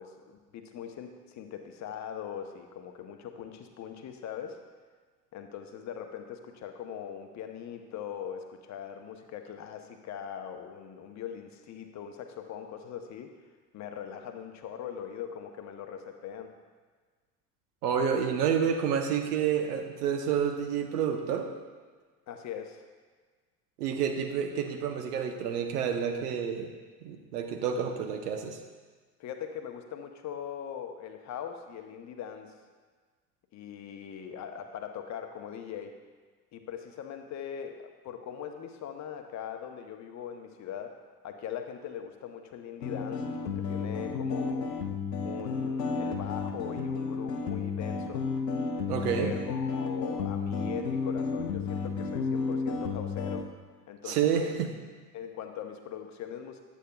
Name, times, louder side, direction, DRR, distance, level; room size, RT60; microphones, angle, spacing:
voice 1, 0.0-4.6 5.3-13.3 13.7-16.5 22.3-22.8 29.2-32.5 33.5-35.9 36.5-41.0 41.2-44.8 45.2-48.3 49.1-53.5 53.9-54.4 55.1-56.6, left 8 dB, 35° left, 5 dB, 0.7 m, -41 dB
voice 2, 17.8-21.5 23.8-26.7 27.0-28.6 48.9-49.3 54.1-54.7, right 7 dB, 70° right, 4 dB, 0.9 m, -29 dB
sound 1, 42.8-53.4, left 4 dB, 85° left, 0.7 m, -32 dB
8.2 x 8.2 x 2.3 m, 1.5 s
figure-of-eight pair, 65°, 48 cm